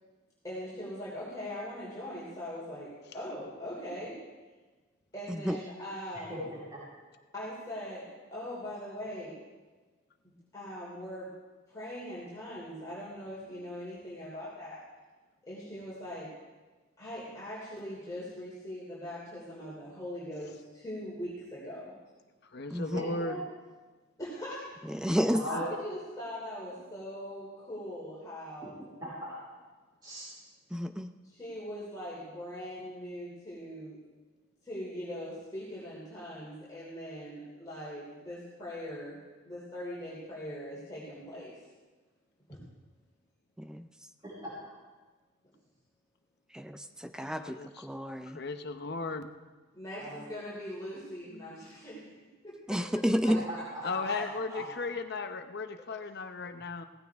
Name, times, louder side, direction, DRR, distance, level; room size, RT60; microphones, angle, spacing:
voice 1, 0.4-4.2 5.1-6.4 7.3-9.3 10.5-11.3 11.7-14.8 15.4-16.3 17.0-21.8 24.2-24.8 25.5-28.8 31.4-34.0 34.6-39.2 39.4-41.6 42.5-42.6 49.7-52.1 52.4-52.6 54.1-54.3, equal, 15° left, -8 dB, 3.0 m, -41 dB
voice 2, 5.3-5.6 22.7-23.2 24.8-25.5 30.7-31.1 43.6-44.1 46.5-48.4 52.7-53.5, equal, 5° right, 9 dB, 0.4 m, -31 dB
voice 3, 6.3-6.8 23.0-23.4 25.3-25.7 28.6-28.7 29.0-29.3 30.0-30.3 44.2-44.7 50.0-50.2 53.9-54.1 54.5-54.6, equal, 20° right, -9 dB, 5.0 m, -39 dB
voice 4, 22.4-23.4 47.2-47.7 48.3-49.4 53.8-56.8, left 3 dB, 50° left, 8 dB, 0.8 m, -36 dB
17.0 x 15.5 x 3.5 m, 1.3 s
head